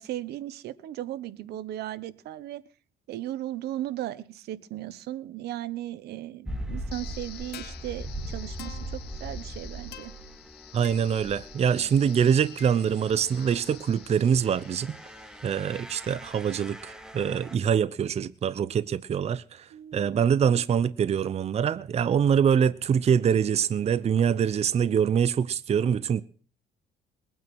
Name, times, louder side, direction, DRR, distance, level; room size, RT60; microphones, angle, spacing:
voice 1, 0.0-2.6 3.1-10.1 19.7-20.3, right 13 dB, 75° right, 1.2 m, -36 dB
sound 1, 6.4-17.6, right 1 dB, 5° right, 2.3 m, -41 dB
sound 2, 6.9-15.9, left 12 dB, 75° left, 1.9 m, -48 dB
voice 2, 10.7-15.0 15.4-26.2, right 7 dB, 40° right, 0.8 m, -24 dB
21.0 x 9.3 x 6.2 m
cardioid pair, 110°, 17 cm